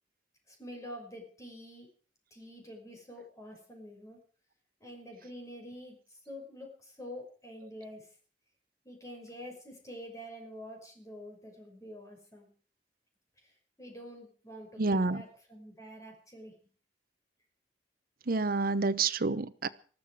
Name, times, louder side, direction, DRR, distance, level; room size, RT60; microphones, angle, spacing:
voice 1, 0.5-1.9 2.3-4.2 4.8-6.0 6.3-8.1 8.8-12.5 13.4-16.5, equal, 20° left, 5.8 m, -47 dB
voice 2, 14.8-15.2 18.3-19.7, right 3 dB, 55° right, 0.9 m, -28 dB
19.5 x 14.0 x 4.8 m
head